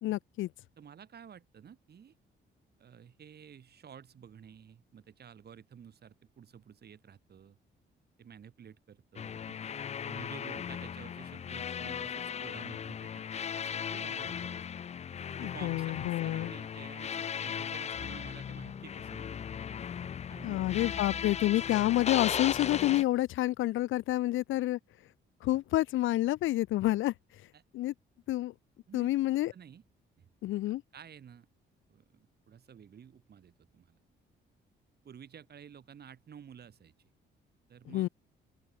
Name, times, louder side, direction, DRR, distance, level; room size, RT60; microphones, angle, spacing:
voice 1, 0.0-0.5 15.4-16.5 20.4-24.8 25.4-27.1 27.7-27.9 28.3-28.5 28.9-29.5 30.4-30.8 37.9-38.1, left 15 dB, 80° left, 0.8 m, -29 dB
voice 2, 0.8-2.1 2.8-7.6 8.2-9.6 10.1-13.2 13.6-14.6 15.4-19.3 20.3-20.8 27.5-27.6 28.9-29.1 29.5-29.8 30.2-30.3 30.7-31.5 31.9-34.0 35.0-37.1 37.7-38.1, right 8 dB, 55° right, 5.5 m, -52 dB
sound 1, 9.2-23.0, left 8 dB, 35° left, 0.4 m, -37 dB
open air
cardioid pair, 90°, 20 cm